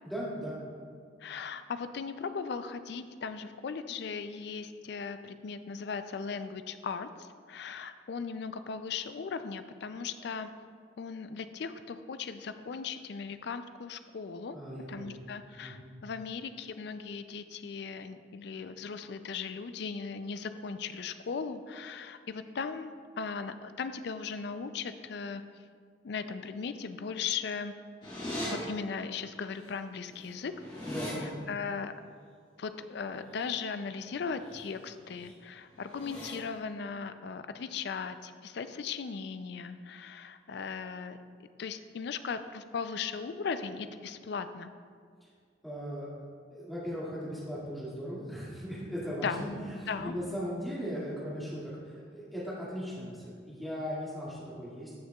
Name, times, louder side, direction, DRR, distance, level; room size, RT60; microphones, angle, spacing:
voice 1, 0.0-0.6 14.5-15.2 15.6-15.9 30.9-31.4 45.6-46.1 46.5-54.9, equal, ahead, -9 dB, 2.1 m, -38 dB
voice 2, 1.2-10.5 11.0-14.6 14.9-25.4 26.0-27.7 28.5-30.5 31.2-31.9 32.6-41.2 41.6-44.7 49.2-49.4 49.9-50.1, left 5 dB, 55° left, 11 dB, 0.4 m, -38 dB
sound 1, 28.0-28.5 29.7-29.8 30.1-31.1 34.3-34.6 35.0-35.3 35.8-36.3, left 1 dB, 25° left, 2.0 m, -40 dB
13.5 x 6.5 x 2.3 m, 2.1 s
head